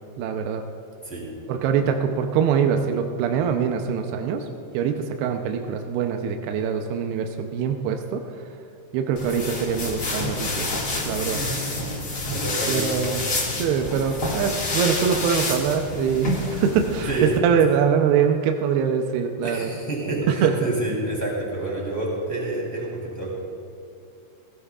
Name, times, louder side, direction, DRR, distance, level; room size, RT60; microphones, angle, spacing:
voice 1, 0.2-0.6 1.5-4.5 4.7-8.2 8.9-10.7 11.1-11.4 12.2-12.4 12.7-13.2 13.5-19.7 20.3-20.6, right 7 dB, 80° right, 5 dB, 2.4 m, -23 dB
sound 1, 9.1-17.4, left 2 dB, 50° left, 1.2 m, -28 dB
voice 2, 11.3-11.6 12.3-13.0 17.1-17.3 19.4-23.3, right 2 dB, 5° left, -4 dB, 1.9 m, -28 dB
18.0 x 16.5 x 2.4 m, 2.5 s
omnidirectional pair, 5.3 m